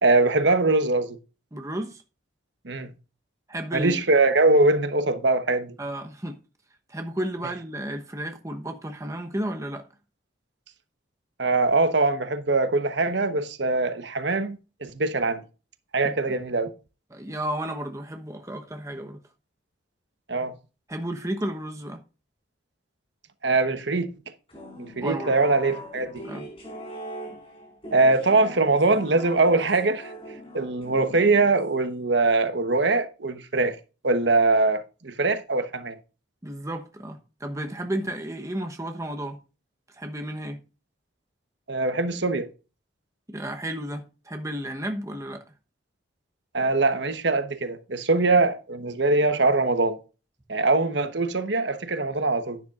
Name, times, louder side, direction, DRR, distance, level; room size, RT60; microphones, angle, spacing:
voice 1, 0.0-1.2 2.6-2.9 3.7-5.8 11.4-15.4 15.9-16.7 20.3-20.5 23.4-24.1 24.8-26.1 27.9-30.1 30.5-33.7 34.0-36.0 41.7-42.5 46.5-50.0 50.5-52.6, right 3 dB, 65° right, 1.1 m, -22 dB
voice 2, 1.5-2.0 3.5-4.0 5.8-6.4 6.9-9.8 16.0-16.3 17.1-19.2 20.9-22.0 25.0-25.5 26.2-26.5 36.4-39.4 39.9-40.6 43.3-45.4, right 1 dB, 15° right, 1.0 m, -33 dB
sound 1, 24.5-31.9, equal, 30° left, 5.1 m, -41 dB
11.0 x 10.0 x 2.5 m
head